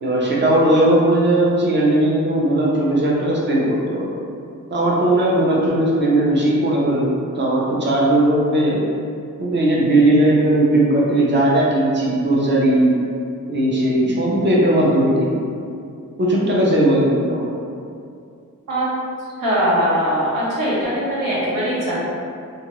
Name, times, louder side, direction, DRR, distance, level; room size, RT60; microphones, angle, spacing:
voice 1, 0.0-4.1 4.7-8.8 9.4-13.0 13.5-15.4 16.2-17.5, right 1 dB, 35° right, -4 dB, 0.6 m, -17 dB
voice 2, 19.4-21.9, equal, 85° right, -8 dB, 1.0 m, -20 dB
2.8 x 2.4 x 3.0 m, 2.4 s
wide cardioid pair, 150°, 32 cm